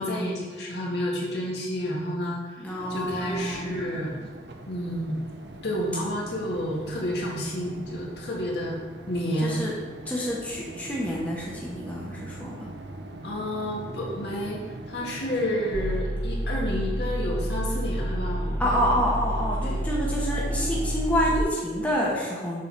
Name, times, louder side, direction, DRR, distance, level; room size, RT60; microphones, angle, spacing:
voice 1, 0.0-4.1 4.7-5.2 5.6-8.7 9.1-9.6 13.2-14.6 14.9-18.8 19.6-19.8, equal, 65° left, -3 dB, 1.8 m, -30 dB
voice 2, 2.6-4.3 9.4-9.8 10.1-12.7 18.6-22.6, equal, 10° left, -5 dB, 1.0 m, -28 dB
sound 1, 2.8-16.0, right 2 dB, 65° right, 0.7 m, -42 dB
sound 2, 15.7-21.4, equal, 20° right, 0.9 m, -29 dB
7.3 x 4.0 x 6.0 m, 1.4 s
head